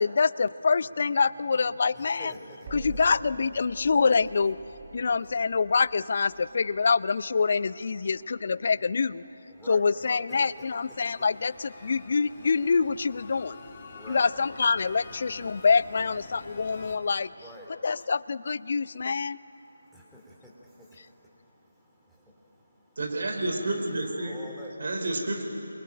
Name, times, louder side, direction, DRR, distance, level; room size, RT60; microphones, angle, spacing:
voice 1, 0.0-2.3 2.7-4.6 4.9-9.2 9.7-13.6 14.1-17.3 17.7-19.4, left 5 dB, 45° left, 18 dB, 0.6 m, -25 dB
sound 1, 0.8-11.8, right 4 dB, 30° right, 3.6 m, -49 dB
voice 2, 1.9-2.9 5.0-5.1 9.5-10.1 13.9-14.3 15.6-15.7 17.3-17.8 19.6-23.0 23.5-24.7, equal, ahead, -5 dB, 3.4 m, -49 dB
sound 2, 10.3-17.0, left 3 dB, 25° left, 3.2 m, -47 dB
voice 3, 23.0-24.4 24.8-25.4, right 2 dB, 50° right, 3 dB, 4.5 m, -30 dB
28.0 x 23.0 x 9.1 m, 2.9 s
figure-of-eight pair, 155°, 0 cm